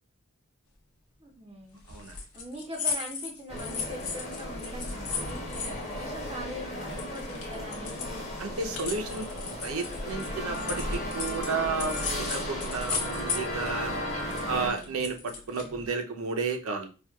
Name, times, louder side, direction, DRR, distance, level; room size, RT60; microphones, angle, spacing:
voice 1, 1.2-1.8 2.3-8.2 13.1-15.0, equal, 20° right, 1 dB, 0.4 m, -43 dB
sound 1, 1.9-6.6 6.9-11.5 11.8-13.7 14.0-15.9, left 5 dB, 85° left, 0.7 m, -36 dB
sound 2, 3.5-14.7, left 1 dB, 30° left, 0.9 m, -35 dB
voice 2, 8.4-9.3 9.6-13.9 14.5-16.9, right 4 dB, 80° right, 5 dB, 0.6 m, -32 dB
4.3 x 2.2 x 2.2 m, 0.35 s
head